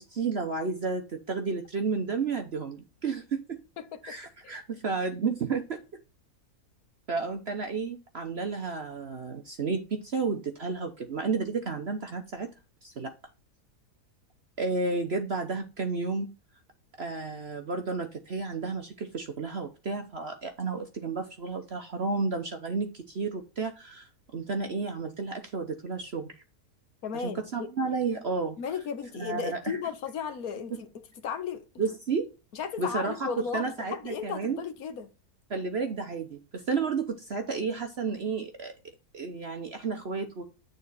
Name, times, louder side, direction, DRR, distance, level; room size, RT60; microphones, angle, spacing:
voice 1, 0.0-3.6 4.0-5.8 7.1-12.5 12.8-13.1 14.6-16.3 17.0-26.3 27.1-28.6 29.1-29.8 31.8-32.3 32.8-34.6 35.5-38.7 39.1-40.4, right 4 dB, 45° right, 1.0 m, -32 dB
voice 2, 3.8-4.2 4.4-4.5 27.0-27.7 28.6-30.9 31.2-31.7 32.5-35.1, left 6 dB, 65° left, 1.5 m, -35 dB
9.1 x 4.1 x 4.0 m
omnidirectional pair, 1.7 m